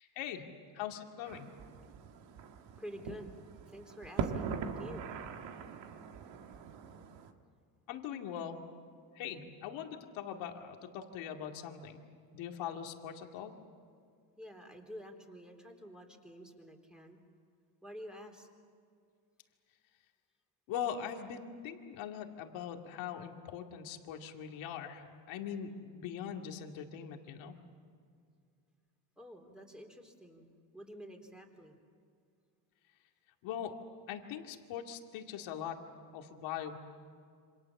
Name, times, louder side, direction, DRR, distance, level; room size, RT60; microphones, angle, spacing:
voice 1, 0.0-1.5 7.9-8.6 9.2-12.0 12.3-13.5 20.7-27.6 33.4-33.8 34.1-35.8 36.1-36.8, left 8 dB, 85° left, 3 dB, 2.3 m, -41 dB
sound 1, 1.3-7.3, right 6 dB, 70° right, 1.9 m, -42 dB
voice 2, 2.8-3.4 3.7-5.1 14.4-17.2 17.8-18.5 29.2-31.8, equal, ahead, 3 dB, 3.8 m, -49 dB
28.0 x 26.0 x 7.2 m, 2.2 s
cardioid pair, 115°, 45 cm